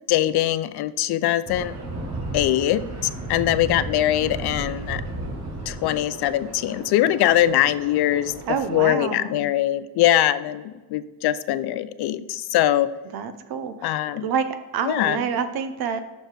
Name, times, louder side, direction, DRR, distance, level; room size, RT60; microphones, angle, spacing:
voice 1, 0.1-1.7 2.3-5.0 5.7-8.3 8.7-12.9 13.8-14.3 14.9-15.2, left 13 dB, 75° left, 14 dB, 0.5 m, -22 dB
sound 1, 1.4-8.9, right 2 dB, 40° right, 1.4 m, -34 dB
voice 2, 8.5-9.4 13.1-13.9 14.2-16.0, right 6 dB, 65° right, 10 dB, 0.8 m, -27 dB
6.4 x 4.6 x 4.8 m, 1.2 s
cardioid pair, 165°, 39 cm